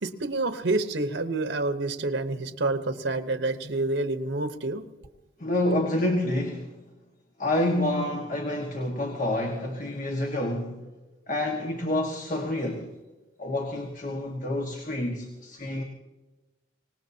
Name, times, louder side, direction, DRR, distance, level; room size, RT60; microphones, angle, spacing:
voice 1, 0.0-4.8, right 2 dB, 85° right, 8 dB, 1.1 m, -28 dB
voice 2, 5.4-6.8 7.4-10.9 11.3-12.9 13.4-15.8, left 1 dB, 45° left, 2 dB, 1.6 m, -28 dB
25.0 x 19.0 x 2.8 m, 1.1 s
head